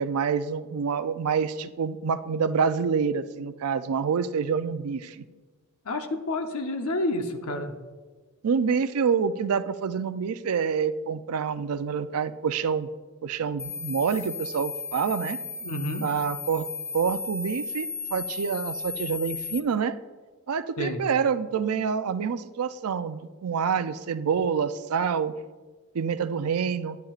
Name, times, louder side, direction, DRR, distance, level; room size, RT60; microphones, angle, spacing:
voice 1, 0.0-5.2 8.4-12.9 13.2-15.4 16.0-16.7 16.9-20.0 20.5-25.3 25.9-27.0, right 6 dB, 85° right, 13 dB, 0.4 m, -27 dB
voice 2, 5.8-7.7 15.6-16.1 20.8-21.0, left 1 dB, 75° left, 5 dB, 0.9 m, -29 dB
sound 1, 13.6-19.6, left 5 dB, 15° left, 0.6 m, -35 dB
11.5 x 10.5 x 2.4 m, 1.3 s
head